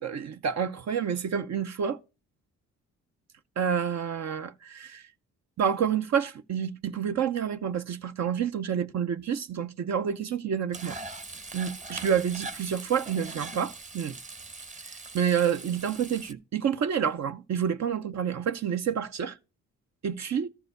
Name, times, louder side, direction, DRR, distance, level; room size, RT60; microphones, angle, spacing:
voice 1, 0.0-2.0 3.6-5.0 5.6-11.0 11.5-14.1 15.1-19.4 20.0-20.5, right 8 dB, 60° right, 0.8 m, -28 dB
Frying (food), 10.7-16.3, right 3 dB, 25° right, 0.9 m, -41 dB
13.5 x 4.7 x 6.5 m
cardioid pair, 80°, 31 cm